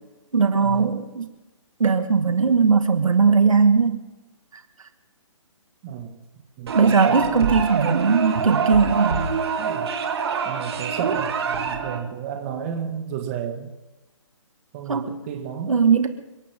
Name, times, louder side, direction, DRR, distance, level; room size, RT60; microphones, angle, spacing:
voice 1, 0.3-1.3 1.8-4.0 6.7-9.4 14.9-15.2 15.7-16.1, right 5 dB, 90° right, 7 dB, 2.1 m, -19 dB
voice 2, 5.8-6.1 6.6-7.5 9.6-9.9 10.4-13.7 14.7-15.8, right 8 dB, 25° right, 3 dB, 2.0 m, -32 dB
sound 1, 6.7-12.0, right 5 dB, 50° right, 2.6 m, -25 dB
29.5 x 12.0 x 3.8 m, 1.1 s
hypercardioid pair, 160°, 17 cm